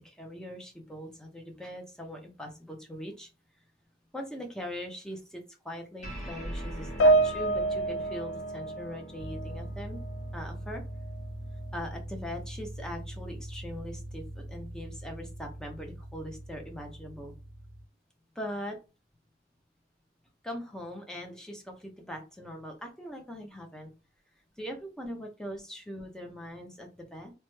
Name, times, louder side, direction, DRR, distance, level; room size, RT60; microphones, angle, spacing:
voice 1, 0.0-3.3 3.6-3.7 4.1-10.0 10.3-10.8 11.7-17.3 18.3-18.8 20.4-23.9 24.6-27.3, equal, 5° left, 2 dB, 0.5 m, -41 dB
sound 1, 6.0-12.8, right 1 dB, 40° left, 1.6 m, -43 dB
Piano, 7.0-9.7 9.9-10.2 11.0-11.1, right 2 dB, 85° left, 0.4 m, -27 dB
sound 2, 9.2-17.8, right 1 dB, 90° right, 0.6 m, -41 dB
3.1 x 2.2 x 3.1 m, 0.31 s
head